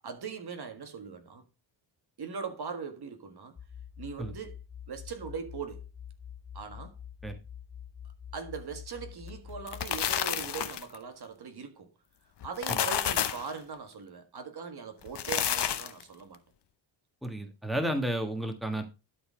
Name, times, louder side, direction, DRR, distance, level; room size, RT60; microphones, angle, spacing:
voice 1, 0.0-1.4 2.2-3.6 4.0-4.6 4.9-5.8 6.5-7.0 8.3-11.9 12.4-16.4, right 6 dB, 50° right, 1.6 m, -40 dB
sound 1, 3.6-10.0, left 8 dB, 20° left, 0.6 m, -46 dB
sound 2, 9.5-11.0 12.4-13.5 15.0-16.0, left 9 dB, 55° left, 1.0 m, -30 dB
voice 2, 17.2-18.8, right 1 dB, ahead, 1.6 m, -32 dB
12.0 x 4.3 x 5.0 m
cardioid pair, 100°, 48 cm